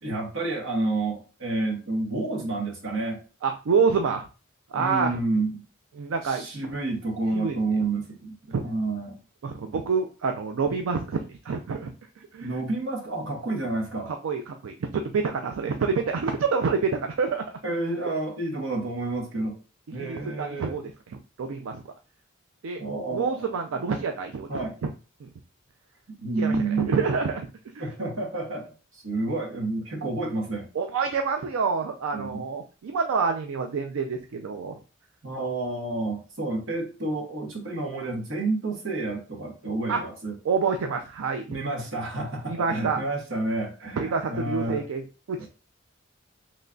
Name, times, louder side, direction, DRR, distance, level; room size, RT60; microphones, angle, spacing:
voice 1, 0.0-3.2 4.7-5.6 6.2-8.4 8.6-9.2 12.4-14.1 17.6-19.6 19.9-20.8 22.8-23.5 24.5-24.8 26.2-27.0 27.8-30.7 32.1-32.4 35.2-40.4 41.5-44.8, right 2 dB, 65° right, 0 dB, 1.1 m, -29 dB
voice 2, 3.4-4.3 4.7-5.2 6.0-6.5 7.3-7.6 8.5-8.6 9.4-11.9 12.3-12.6 14.2-17.4 20.0-21.8 22.6-22.8 23.1-24.5 25.2-25.3 26.4-27.4 30.8-34.8 39.9-40.0 40.4-41.5 42.5-43.0 44.0-45.5, right 5 dB, 85° right, 5 dB, 0.4 m, -27 dB
3.7 x 3.1 x 2.3 m, 0.34 s
head